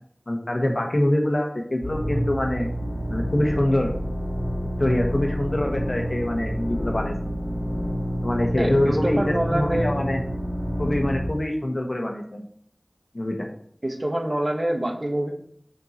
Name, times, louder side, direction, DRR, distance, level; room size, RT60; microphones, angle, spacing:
voice 1, 0.3-2.7 3.1-3.9 4.8-7.1 8.2-10.2 10.8-12.4 13.1-13.5, left 1 dB, 70° left, 2 dB, 1.3 m, -24 dB
sound 1, 1.8-11.3, equal, 25° left, 2.5 m, -28 dB
voice 2, 8.6-9.9 13.8-15.3, right 1 dB, 60° right, 2 dB, 1.3 m, -26 dB
6.9 x 4.5 x 4.4 m, 0.62 s
wide cardioid pair, 40°, 0 cm